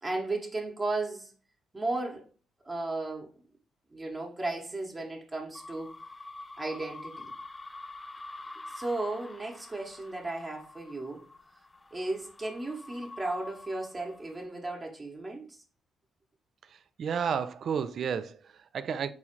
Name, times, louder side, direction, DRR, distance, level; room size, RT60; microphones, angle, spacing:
voice 1, 0.0-1.3 1.7-2.2 2.6-3.3 3.9-5.9 6.6-7.3 8.7-11.2 11.9-15.6, right 2 dB, 20° right, 1.0 m, -35 dB
sound 1, 5.5-14.4, left 2 dB, 20° left, 0.3 m, -47 dB
voice 2, 16.7-19.1, right 7 dB, 60° right, 0.3 m, -32 dB
4.1 x 2.4 x 4.4 m
cardioid pair, 90°, 0 cm